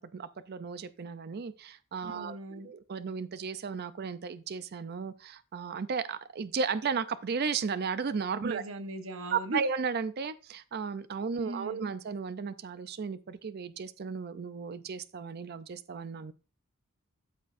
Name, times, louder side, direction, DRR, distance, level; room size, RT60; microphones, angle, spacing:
voice 1, 0.0-8.6 9.3-16.3, right 5 dB, 50° right, 0.4 m, -34 dB
voice 2, 2.0-2.7 8.4-9.6 11.4-11.9, right 1 dB, 65° right, 1.0 m, -39 dB
13.0 x 4.4 x 2.6 m
head